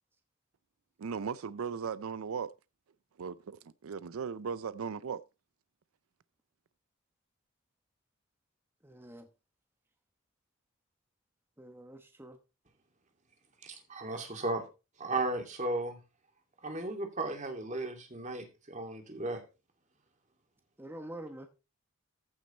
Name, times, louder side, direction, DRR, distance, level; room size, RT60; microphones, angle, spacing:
voice 1, 1.0-2.5 3.2-3.6 3.8-5.2, right 6 dB, 85° right, 0.5 m, -37 dB
voice 2, 8.8-9.3 11.6-12.4 20.8-21.6, right 1 dB, 10° right, 1.1 m, -46 dB
voice 3, 13.6-14.6 15.0-16.0 16.6-19.4, right 2 dB, 35° right, 2.5 m, -35 dB
14.5 x 6.2 x 4.3 m
head